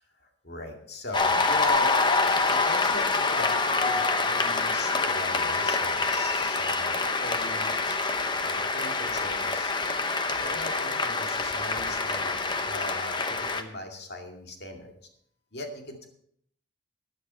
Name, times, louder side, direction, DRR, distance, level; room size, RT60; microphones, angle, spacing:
voice 1, 0.4-2.0 2.4-8.0 8.4-9.8 10.4-14.9 15.5-16.1, left 2 dB, 55° left, 2 dB, 2.3 m, -39 dB
Cheering / Applause, 1.1-13.6, left 3 dB, 25° left, 0.8 m, -26 dB
13.5 x 10.5 x 4.4 m, 0.66 s
head